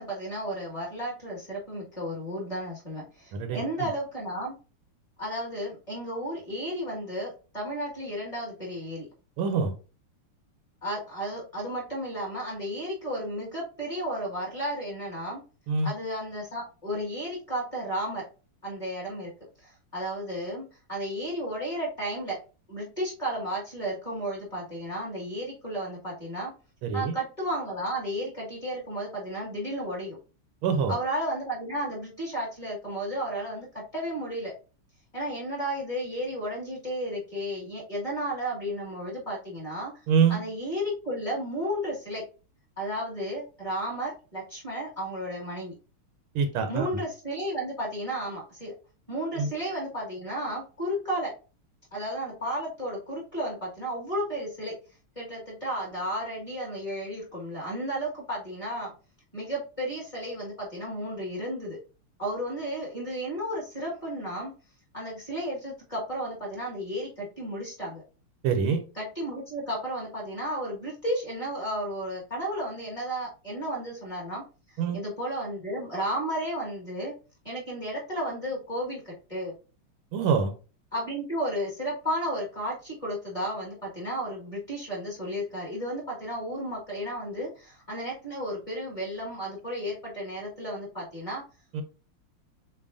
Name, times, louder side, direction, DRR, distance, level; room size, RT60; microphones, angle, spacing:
voice 1, 0.0-4.5 5.2-9.1 10.8-15.4 15.8-18.2 18.6-19.3 19.6-22.4 22.7-26.5 26.9-30.2 30.9-33.7 33.9-34.5 35.1-39.9 40.3-42.2 42.8-45.7 46.7-48.7 49.1-51.3 51.9-54.7 55.1-58.9 59.3-61.8 62.2-64.5 64.9-68.0 69.0-74.4 74.9-77.1 77.4-79.5 80.9-91.4, equal, 15° left, -5 dB, 1.5 m, -33 dB
voice 2, 3.3-3.9 9.4-9.7 15.7-15.9 26.8-27.1 30.6-30.9 40.1-40.4 46.3-46.9 49.3-49.5 68.4-68.8 74.8-75.0 80.1-80.5 91.7-91.8, right 6 dB, 80° right, 6 dB, 1.5 m, -25 dB
7.1 x 2.5 x 2.5 m, 0.34 s
omnidirectional pair, 2.4 m